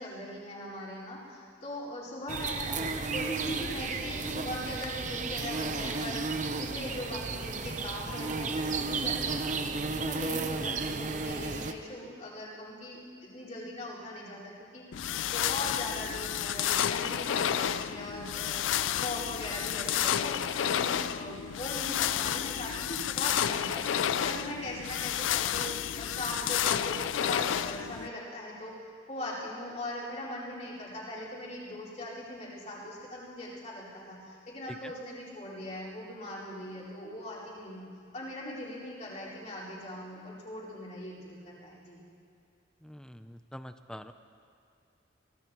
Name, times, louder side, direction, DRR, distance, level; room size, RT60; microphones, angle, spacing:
voice 1, 0.0-28.7 29.1-37.9 38.1-42.0, left 1 dB, 40° left, -8 dB, 4.4 m, -40 dB
sound 1, 2.3-11.7, right 4 dB, 40° right, 0.7 m, -33 dB
sound 2, 14.9-28.1, left 10 dB, 85° left, 0.4 m, -31 dB
voice 2, 42.8-44.1, equal, 5° left, 9 dB, 0.4 m, -45 dB
23.5 x 17.0 x 3.0 m, 2.4 s
head